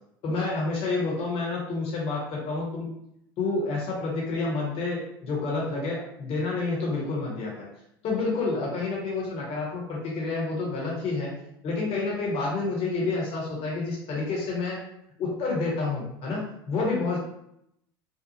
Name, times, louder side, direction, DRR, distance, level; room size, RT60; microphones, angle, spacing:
voice 1, 0.2-2.9 3.4-7.5 8.0-11.3 11.6-14.8 15.2-17.2, left 3 dB, 50° left, -3 dB, 1.0 m, -29 dB
2.8 x 2.0 x 2.8 m, 0.76 s
hypercardioid pair, 80°, 13 cm